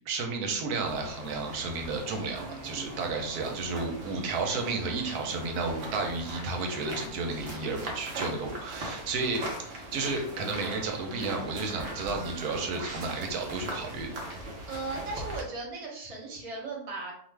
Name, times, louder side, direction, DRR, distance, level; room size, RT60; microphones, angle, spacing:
voice 1, 0.1-14.1, right 3 dB, 85° right, 3 dB, 1.1 m, -32 dB
sound 1, 0.7-15.4, right 1 dB, 60° right, 0.9 m, -40 dB
voice 2, 14.7-17.1, right 3 dB, 35° right, -2 dB, 0.6 m, -37 dB
2.5 x 2.4 x 3.2 m, 0.64 s
omnidirectional pair, 1.6 m